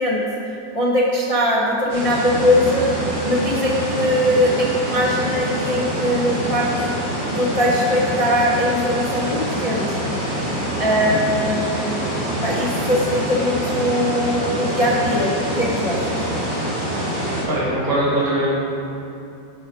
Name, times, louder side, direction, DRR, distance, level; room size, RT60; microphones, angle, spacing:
voice 1, 0.0-6.7 7.3-10.0 10.8-11.9 12.4-16.3, left 1 dB, 60° left, -5 dB, 0.3 m, -21 dB
sound 1, 1.9-17.4, equal, 25° right, 2.1 m, -25 dB
voice 2, 17.5-18.5, right 1 dB, 50° right, -9 dB, 2.7 m, -21 dB
9.6 x 5.3 x 4.4 m, 2.7 s
omnidirectional pair, 2.1 m